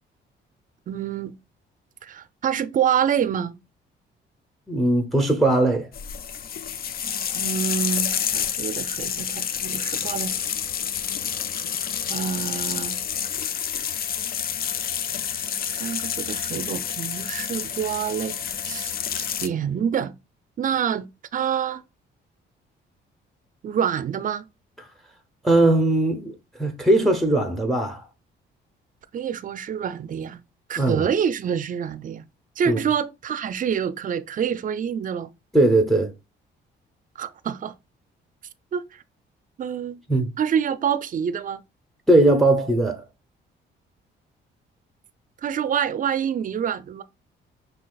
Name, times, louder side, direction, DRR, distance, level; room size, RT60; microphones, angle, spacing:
voice 1, 0.9-1.3 2.0-3.6 7.3-10.3 12.1-13.0 15.7-18.3 18.6-20.1 20.6-21.0 21.3-21.8 23.6-24.5 29.1-30.4 30.7-32.3 32.6-35.3 37.2-37.7 38.7-39.0 39.6-40.0 40.4-41.6 45.4-47.0, right 8 dB, 40° right, 0.4 m, -27 dB
voice 2, 4.7-5.9 25.4-26.3 26.6-28.0 30.8-31.1 32.7-32.8 35.5-36.1 40.1-40.3 42.1-43.0, right 2 dB, ahead, 0.7 m, -19 dB
sound 1, 5.9-19.5, left 8 dB, 50° left, 0.4 m, -29 dB
5.6 x 2.8 x 2.3 m
cardioid pair, 90°, 20 cm